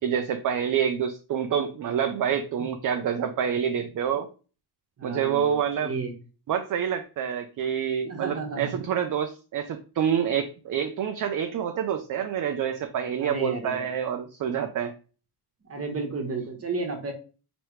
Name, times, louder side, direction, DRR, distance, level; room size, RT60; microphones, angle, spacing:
voice 1, 0.0-4.3 5.0-5.9 6.5-14.9, right 8 dB, 50° right, 7 dB, 0.5 m, -27 dB
voice 2, 5.0-6.1 8.1-8.7 13.2-13.8 15.7-17.1, right 3 dB, 35° right, 3 dB, 1.1 m, -32 dB
4.8 x 3.0 x 3.1 m, 0.35 s
wide cardioid pair, 165°, 41 cm